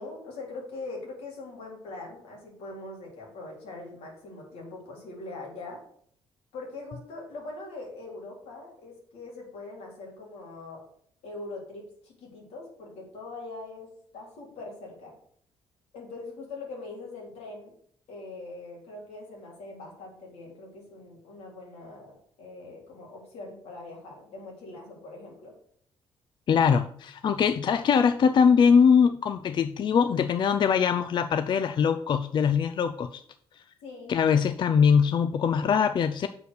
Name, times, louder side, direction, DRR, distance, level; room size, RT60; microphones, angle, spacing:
voice 1, 0.0-5.8 6.5-10.9 11.2-15.1 15.9-17.7 18.1-25.5 33.8-34.1, left 2 dB, 85° left, -2 dB, 3.3 m, -42 dB
voice 2, 26.5-33.2 34.1-36.3, left 6 dB, 45° left, 10 dB, 0.4 m, -22 dB
6.8 x 4.5 x 6.4 m, 0.62 s
cardioid pair, 95°, 11 cm